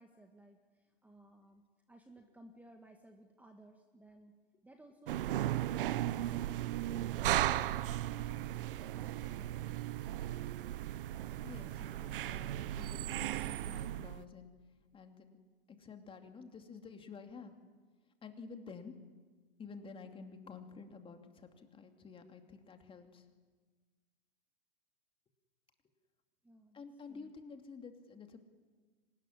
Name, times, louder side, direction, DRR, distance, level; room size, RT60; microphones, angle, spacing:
voice 1, 0.0-1.6 1.9-4.3 8.9-9.8 18.5-18.6 26.4-27.3, right 1 dB, 5° right, 5 dB, 1.7 m, -59 dB
sound 1, 5.1-14.2, right 13 dB, 65° right, 0.9 m, -36 dB
voice 2, 11.4-14.5 14.9-15.4 15.7-17.5 18.2-18.9 19.6-23.2 26.7-28.4, left 5 dB, 20° left, 6 dB, 2.7 m, -51 dB
24.5 x 20.0 x 9.9 m, 1.4 s
hypercardioid pair, 120°, 29 cm